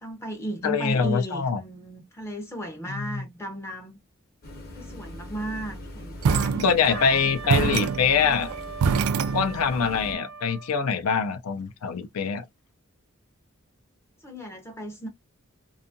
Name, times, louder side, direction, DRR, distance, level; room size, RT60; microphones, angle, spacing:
voice 1, 0.0-4.0 4.8-7.9 8.2-8.4 10.0-10.2 14.2-15.1, right 1 dB, 10° left, 0.4 m, -35 dB
voice 2, 0.6-1.6 2.9-3.2 6.6-8.5 9.3-12.4, left 6 dB, 90° left, 0.4 m, -24 dB
sound 1, 4.4-10.1, left 1 dB, 45° left, 0.7 m, -41 dB
sound 2, 6.2-7.1 7.5-9.9, right 6 dB, 85° right, 0.3 m, -25 dB
Wind instrument woodwind instrument, 6.9-10.7, right 5 dB, 65° right, 0.7 m, -39 dB
2.6 x 2.3 x 2.5 m
head